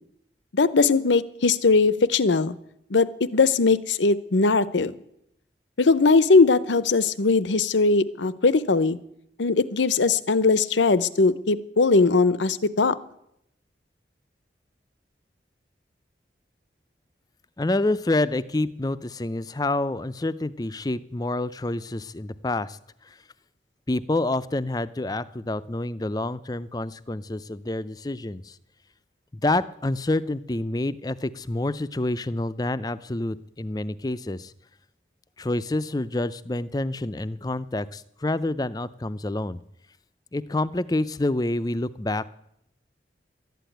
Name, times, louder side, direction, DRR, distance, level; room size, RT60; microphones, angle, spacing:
voice 1, 0.5-2.6 2.9-4.9 5.8-9.0 9.4-13.0, left 4 dB, 85° left, 17 dB, 0.7 m, -20 dB
voice 2, 17.6-22.8 23.1-23.2 23.9-28.6 29.3-34.5 35.4-39.6 40.3-42.3, left 2 dB, 20° left, 16 dB, 0.5 m, -28 dB
12.5 x 10.0 x 9.2 m, 0.78 s
head